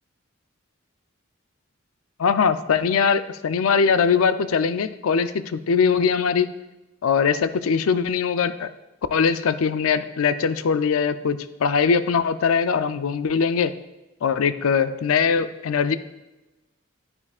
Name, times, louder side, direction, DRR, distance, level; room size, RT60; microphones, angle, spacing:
voice 1, 2.2-6.5 7.0-8.7 9.1-13.7 14.2-16.0, left 6 dB, 90° left, 12 dB, 0.4 m, -21 dB
9.8 x 9.7 x 2.4 m, 1.1 s
head